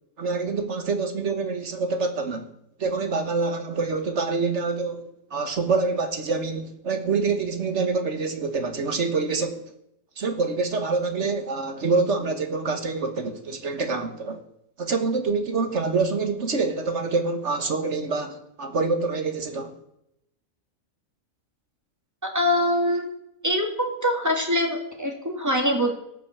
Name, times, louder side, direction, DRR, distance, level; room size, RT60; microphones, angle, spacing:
voice 1, 0.2-2.5 2.8-9.6 10.2-14.4 14.8-19.8, right 4 dB, 60° right, 1.5 m, -26 dB
voice 2, 22.2-23.1 23.4-25.9, equal, 10° right, 2.2 m, -24 dB
16.5 x 5.7 x 7.2 m
omnidirectional pair, 1.4 m